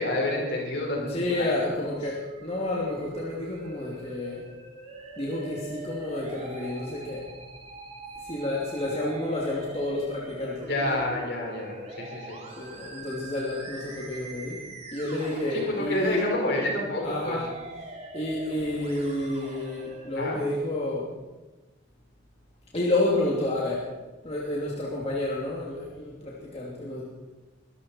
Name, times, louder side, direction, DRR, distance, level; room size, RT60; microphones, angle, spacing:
voice 1, 0.0-1.8 10.6-12.4 15.5-17.4 20.1-20.4, left 1 dB, 60° left, -1 dB, 5.5 m, -29 dB
voice 2, 0.8-4.4 5.2-7.2 8.2-10.8 12.6-14.6 14.9-16.2 17.0-17.5 18.1-21.1 22.7-23.9 24.2-27.0, left 1 dB, 35° left, -5 dB, 2.9 m, -30 dB
Musical instrument, 2.1-20.1, right 2 dB, 35° right, 2.8 m, -43 dB
22.5 x 14.0 x 4.5 m, 1.1 s
head